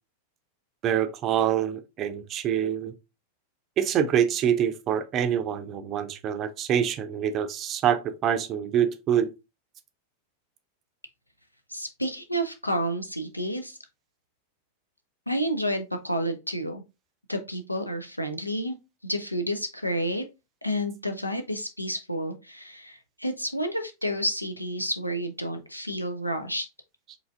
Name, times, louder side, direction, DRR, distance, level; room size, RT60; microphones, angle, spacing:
voice 1, 0.8-2.9 3.8-9.3, right 9 dB, 30° right, 0.5 m, -25 dB
voice 2, 11.7-13.8 15.3-16.8 17.3-18.8 19.0-20.3 20.6-26.7, equal, 85° left, 0.6 m, -30 dB
4.8 x 3.2 x 2.4 m
figure-of-eight pair, 90°, 0 cm